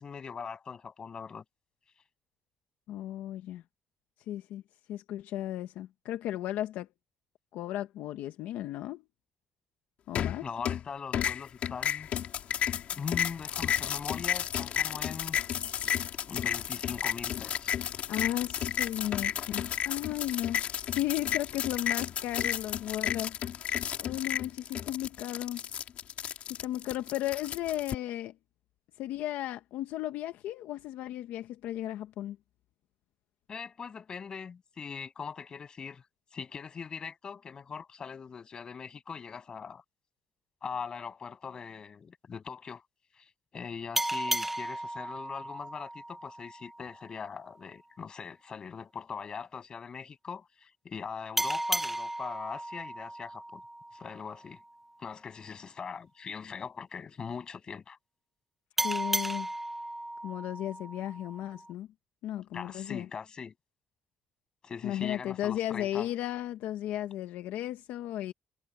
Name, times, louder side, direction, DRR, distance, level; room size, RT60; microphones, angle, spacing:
voice 1, 0.0-1.4 10.4-12.1 12.9-15.4 16.3-17.8 33.5-36.1 36.3-39.8 40.6-42.8 43.2-53.6 53.9-54.6 55.0-58.0 62.5-63.5 64.6-66.1, left 6 dB, 30° left, 7.9 m, -41 dB
voice 2, 2.9-3.6 4.3-4.6 4.9-6.9 7.5-9.0 10.1-10.5 18.1-23.4 24.0-25.6 26.5-28.3 29.0-32.4 58.8-59.5 60.2-61.9 62.2-63.1 64.8-68.3, left 13 dB, 85° left, 1.1 m, -35 dB
sound 1, 10.2-10.9 11.1-27.9, left 9 dB, 50° left, 3.2 m, -32 dB
sound 2, 44.0-47.2 51.4-54.6 58.8-61.7, right 1 dB, 5° right, 0.8 m, -35 dB
cardioid pair, 170°, 3 cm